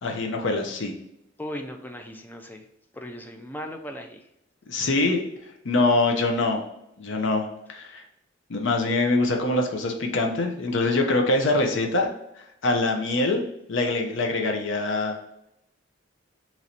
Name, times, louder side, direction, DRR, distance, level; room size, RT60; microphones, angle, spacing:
voice 1, 0.0-0.9 4.7-5.2 5.6-6.6 7.0-8.0 8.5-12.1 12.6-13.4 13.7-15.2, left 2 dB, 70° left, 3 dB, 0.6 m, -24 dB
voice 2, 1.4-2.7 2.9-4.2, equal, 10° left, 4 dB, 0.4 m, -37 dB
3.0 x 2.6 x 4.3 m, 0.82 s
head